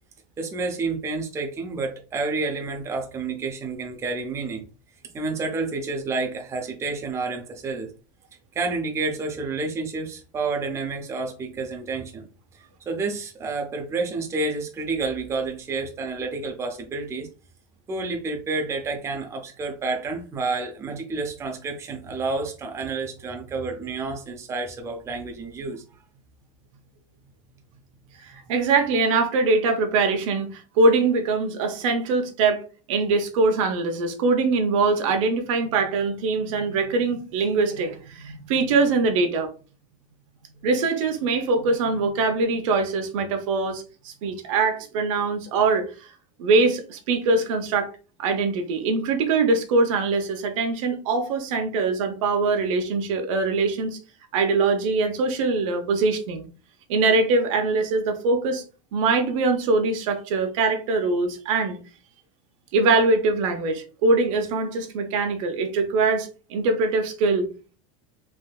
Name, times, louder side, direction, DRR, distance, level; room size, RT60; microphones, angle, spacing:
voice 1, 0.4-4.6 5.1-7.9 8.5-12.3 12.5-17.3 17.9-25.8, right 3 dB, 15° right, 0.5 m, -29 dB
voice 2, 28.2-32.6 32.9-39.5 40.6-45.9 46.4-47.9 48.2-54.0 54.3-56.5 56.9-58.6 58.9-61.8 62.7-67.5, right 3 dB, 75° right, 0.8 m, -22 dB
3.4 x 2.6 x 2.3 m
supercardioid pair, 145°, 17 cm